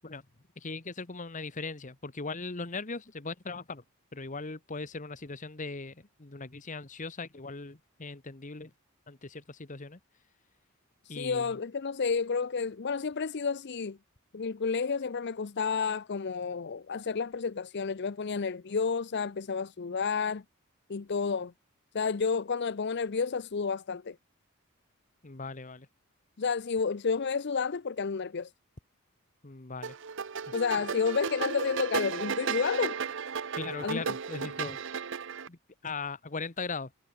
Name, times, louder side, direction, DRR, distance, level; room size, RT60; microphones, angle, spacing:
voice 1, 0.6-3.8 4.1-8.7 9.1-10.0 11.1-11.6 25.2-25.9 29.4-30.0 30.5-30.6 33.6-34.8 35.5-36.9, left 3 dB, 35° left, 1.2 m, -39 dB
voice 2, 11.0-14.0 14.3-20.4 20.9-21.5 21.9-24.2 26.4-28.5 30.5-33.0 33.8-34.0, left 5 dB, 50° left, 0.6 m, -30 dB
sound 1, 29.8-35.5, right 6 dB, 55° right, 0.7 m, -34 dB
head